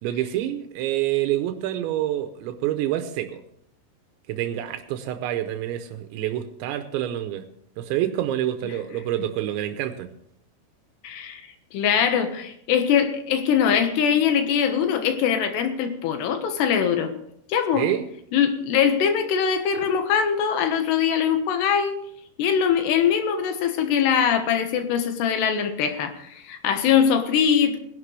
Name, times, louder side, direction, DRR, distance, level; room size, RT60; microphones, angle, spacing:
voice 1, 0.0-3.4 4.3-7.5 7.8-10.1 17.7-18.1, right 12 dB, 85° right, 7 dB, 3.0 m, -27 dB
voice 2, 11.0-11.4 11.7-17.1 17.5-17.9 18.3-22.0 22.4-27.8, left 8 dB, 75° left, 7 dB, 3.3 m, -22 dB
20.0 x 11.0 x 3.3 m, 0.70 s
omnidirectional pair, 5.2 m